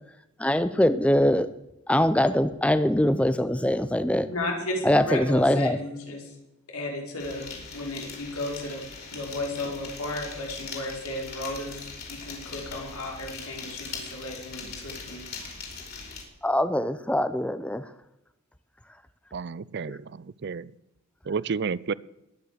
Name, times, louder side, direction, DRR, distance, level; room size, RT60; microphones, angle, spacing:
voice 1, 0.4-1.5 1.9-4.3 4.8-5.8 16.4-17.8, left 1 dB, 5° left, 13 dB, 0.5 m, -22 dB
voice 2, 4.3-6.3 6.7-8.8 9.1-11.8 12.1-15.3, left 1 dB, 85° left, 0 dB, 4.9 m, -34 dB
sound 1, 7.2-16.2, left 4 dB, 45° left, 5.0 m, -41 dB
voice 3, 19.3-20.0 20.4-20.7 21.3-21.9, right 5 dB, 50° right, 21 dB, 0.4 m, -30 dB
22.0 x 9.4 x 6.8 m, 0.93 s
head